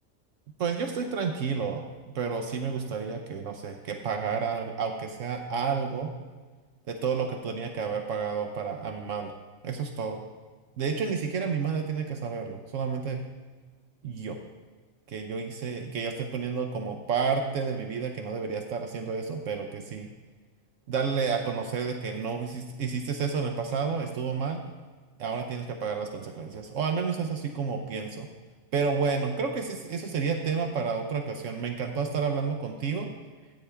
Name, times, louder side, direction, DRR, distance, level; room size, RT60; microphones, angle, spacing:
voice 1, 0.6-1.8 2.1-6.1 6.9-9.3 9.6-10.2 10.8-13.2 14.0-14.4 15.1-20.1 20.9-24.6 25.2-28.3 28.7-33.1, right 5 dB, 70° right, 4 dB, 1.1 m, -30 dB
14.0 x 8.5 x 3.4 m, 1.4 s
omnidirectional pair, 1.4 m